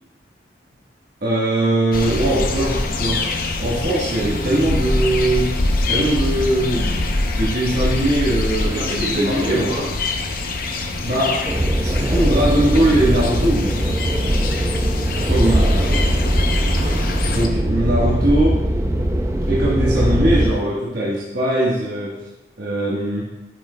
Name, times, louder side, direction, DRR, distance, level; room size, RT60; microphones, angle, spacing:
voice 1, 1.2-3.3 3.6-5.5 5.9-7.0 7.4-9.8 11.0-11.5 11.8-13.8 15.1-15.7 17.3-18.6 19.5-22.3 22.6-23.3, right 1 dB, 55° right, -6 dB, 1.3 m, -20 dB
sound 1, 1.9-17.5, left 2 dB, 50° left, 0.6 m, -24 dB
voice 2, 8.6-9.9 15.5-17.2, equal, 35° right, -5 dB, 1.7 m, -28 dB
sound 2, 11.4-20.5, right 1 dB, 15° right, 0.5 m, -20 dB
8.7 x 6.3 x 2.2 m, 0.96 s
head